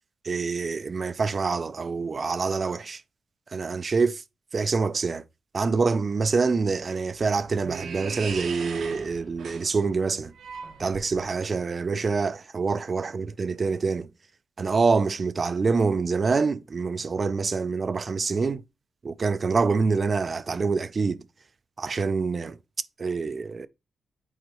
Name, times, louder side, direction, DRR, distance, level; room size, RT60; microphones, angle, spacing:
voice 1, 0.2-3.0 3.5-4.2 4.5-5.2 5.5-10.3 10.8-14.1 14.6-18.6 19.0-21.2 21.8-22.6 23.0-23.7, right 4 dB, 35° right, 0.4 m, -26 dB
sound 1, 6.6-11.4, right 6 dB, 75° right, 1.0 m, -39 dB
7.8 x 4.5 x 3.0 m
wide cardioid pair, 130°, 0 cm